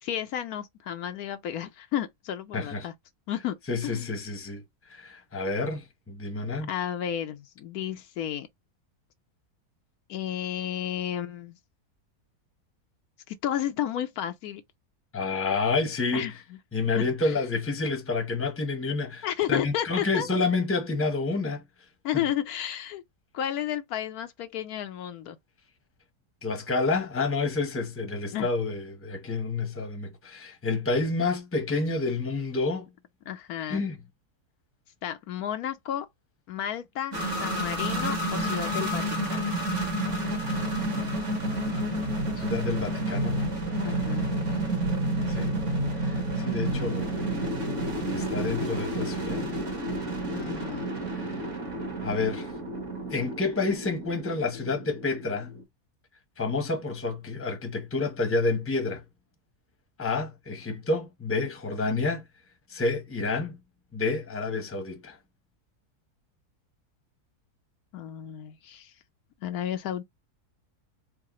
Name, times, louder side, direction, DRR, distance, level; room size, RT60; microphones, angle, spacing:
voice 1, 0.0-2.9 3.3-3.6 3.8-4.1 6.7-8.5 10.1-11.6 13.3-14.6 16.1-16.3 17.0-17.4 19.2-20.3 22.0-23.0 23.3-25.4 28.3-28.5 33.3-33.8 35.0-36.1 36.5-39.4 43.8-44.3 50.3-50.9 67.9-68.9 69.4-70.0, left 10 dB, 75° left, 1.1 m, -32 dB
voice 2, 2.5-2.9 3.7-4.6 4.9-6.7 15.1-16.3 16.7-21.6 22.1-22.2 26.4-32.9 33.6-34.0 42.4-43.4 45.3-45.5 46.0-47.1 48.1-49.5 51.1-51.4 52.0-52.5 53.1-55.6 56.4-59.0 60.0-62.2 62.7-63.6 63.9-65.2, left 3 dB, 10° left, 0.8 m, -29 dB
sound 1, 37.1-55.6, right 1 dB, 50° right, 2.0 m, -30 dB
4.7 x 2.1 x 3.0 m
omnidirectional pair, 1.6 m